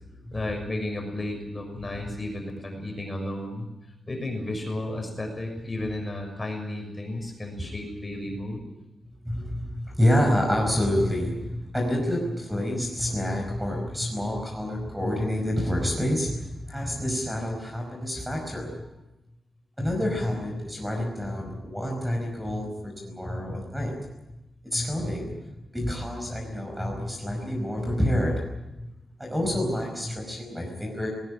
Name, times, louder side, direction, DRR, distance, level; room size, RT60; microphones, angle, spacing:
voice 1, 0.3-3.7 4.1-8.6, left 1 dB, 25° left, 3 dB, 6.4 m, -33 dB
voice 2, 9.2-18.8 19.8-24.1 24.6-25.3 25.7-28.9 29.2-31.1, left 1 dB, 5° right, 1 dB, 5.3 m, -28 dB
19.5 x 19.0 x 9.9 m, 0.98 s
wide cardioid pair, 130°, 0 cm